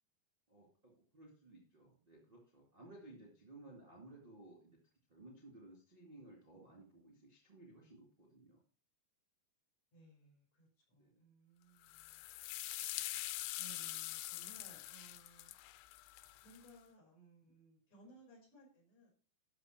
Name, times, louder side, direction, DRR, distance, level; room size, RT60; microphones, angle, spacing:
voice 1, 0.5-4.7 5.1-8.6 11.0-11.2, right 2 dB, 15° right, -3 dB, 2.2 m, -58 dB
voice 2, 9.9-12.3 12.8-13.2 13.6-15.5 16.4-19.1, right 2 dB, 40° left, -1 dB, 6.4 m, -62 dB
sound 1, 11.9-16.7, left 16 dB, 85° left, 2.8 m, -44 dB
13.5 x 4.9 x 6.1 m, 0.40 s
omnidirectional pair, 4.9 m